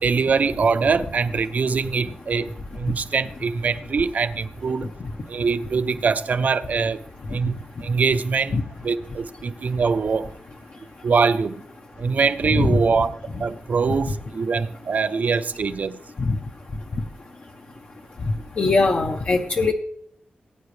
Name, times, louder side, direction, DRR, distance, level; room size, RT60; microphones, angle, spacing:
voice 1, 0.0-4.9 5.3-7.0 7.3-7.6 7.8-8.5 8.8-10.3 11.0-11.5 12.0-16.0, right 5 dB, 55° right, 12 dB, 0.6 m, -23 dB
voice 2, 18.6-19.7, left 3 dB, 45° left, 3 dB, 0.9 m, -20 dB
19.5 x 9.3 x 3.3 m, 0.68 s
wide cardioid pair, 140°, 3 cm